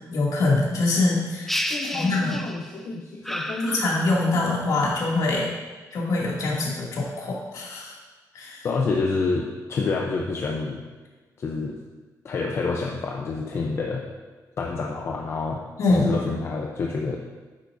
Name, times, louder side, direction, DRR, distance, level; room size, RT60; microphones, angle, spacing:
voice 1, 0.1-1.5 1.9-2.4 3.4-5.5 5.9-7.9 8.3-8.7 15.8-16.1, left 2 dB, 65° left, -4 dB, 2.6 m, -24 dB
sound 1, 1.5-2.8 3.3-4.5, left 1 dB, 5° left, 0.4 m, -31 dB
voice 2, 1.7-3.7 8.6-10.8 11.4-11.8 12.2-14.0 14.6-17.2, left 4 dB, 40° left, -1 dB, 0.7 m, -28 dB
11.5 x 9.6 x 2.7 m, 1.3 s
wide cardioid pair, 180°, 7 cm